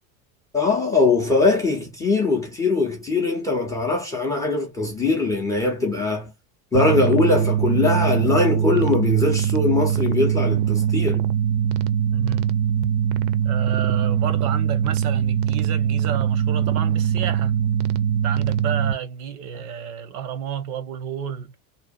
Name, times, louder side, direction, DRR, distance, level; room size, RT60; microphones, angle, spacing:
voice 1, 0.5-6.3 6.7-11.3, left 3 dB, 10° left, 0.4 m, -21 dB
sound 1, 6.7-18.9, right 9 dB, 55° right, 0.4 m, -22 dB
voice 2, 12.1-12.5 13.4-17.7 18.2-21.5, right 8 dB, 90° right, 0.9 m, -31 dB
2.7 x 2.0 x 2.3 m
supercardioid pair, 150°, 43 cm